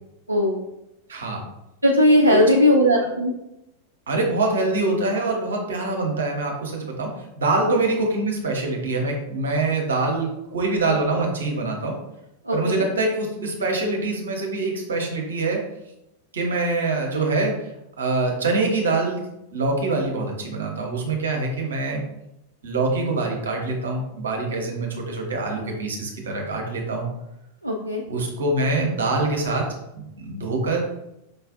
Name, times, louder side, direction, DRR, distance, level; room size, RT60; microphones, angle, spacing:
voice 1, 0.3-0.6 1.8-3.3 12.5-12.8 27.6-28.0, left 1 dB, 85° right, -1 dB, 0.3 m, -18 dB
voice 2, 1.1-1.4 2.3-2.4 4.1-7.1 7.4-11.9 12.5-15.6 16.3-17.5 18.0-19.2 19.5-22.0 22.6-27.1 28.1-29.6 29.9-30.8, right 3 dB, 65° right, 0 dB, 0.9 m, -24 dB
5.2 x 2.4 x 2.4 m, 0.88 s
figure-of-eight pair, 90°, 0 cm